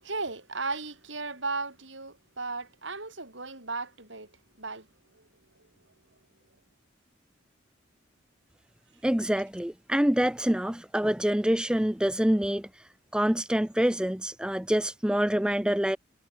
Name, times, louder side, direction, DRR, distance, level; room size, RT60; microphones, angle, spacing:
voice 1, 0.0-4.3 4.6-4.9, right 3 dB, 70° right, 7.1 m, -35 dB
voice 2, 9.0-12.7 13.1-16.0, equal, 5° right, 0.4 m, -26 dB
head